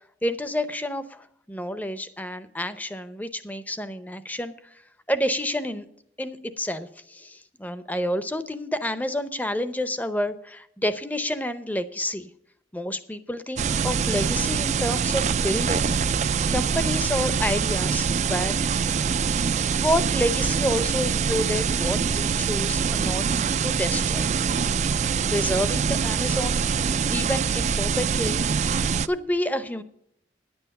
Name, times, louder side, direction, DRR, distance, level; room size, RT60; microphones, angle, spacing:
voice 1, 0.2-4.5 5.1-5.9 6.2-12.3 12.7-16.2 16.5-18.8 19.8-23.2 23.6-24.3 25.3-29.8, left 1 dB, 10° left, 12 dB, 0.6 m, -29 dB
sound 1, 13.6-29.1, right 6 dB, 40° right, 0.3 m, -24 dB
10.5 x 8.7 x 6.5 m, 0.74 s
head